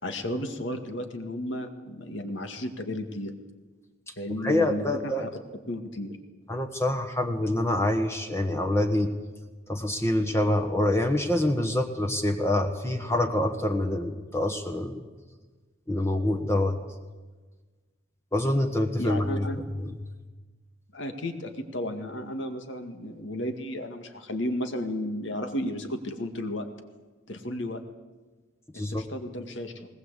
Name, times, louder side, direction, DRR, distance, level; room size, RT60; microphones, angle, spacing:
voice 1, 0.0-3.3 4.2-5.3 5.7-6.2 19.0-19.6 20.9-26.7 27.3-27.8 28.7-29.9, left 1 dB, 65° left, 7 dB, 2.1 m, -33 dB
voice 2, 4.4-5.2 6.5-9.1 9.7-15.1 15.9-16.8 18.3-19.5 19.8-19.9 28.7-29.0, left 1 dB, 15° left, 5 dB, 1.3 m, -26 dB
20.0 x 19.5 x 8.3 m, 1.3 s
head